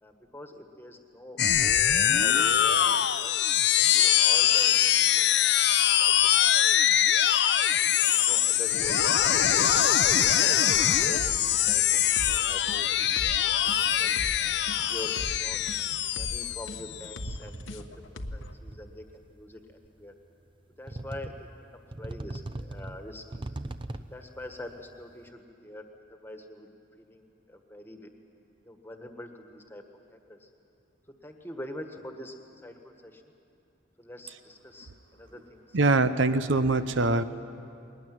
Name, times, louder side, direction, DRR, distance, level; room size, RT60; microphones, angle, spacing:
voice 1, 0.0-3.3 3.8-5.2 5.6-6.1 6.4-6.5 6.9-7.4 8.0-9.7 10.3-13.0 13.5-14.1 14.4-15.6 16.1-17.9 18.3-20.1 20.8-23.5 23.9-28.1 28.6-29.8 30.1-30.5 31.2-33.2 34.0-35.8 36.1-36.2, left 1 dB, 10° left, 5 dB, 1.5 m, -45 dB
sound 1, 1.4-17.2, left 10 dB, 65° left, 0.6 m, -23 dB
sound 2, 10.7-18.5, left 1 dB, 90° left, 1.2 m, -39 dB
sound 3, 17.2-18.0 18.2-19.0 19.8-19.9 20.9-21.6 21.9-24.3, right 2 dB, 25° right, 0.6 m, -40 dB
voice 2, 35.7-37.2, right 3 dB, 85° right, 11 dB, 0.8 m, -23 dB
21.5 x 18.5 x 9.4 m, 2.6 s
head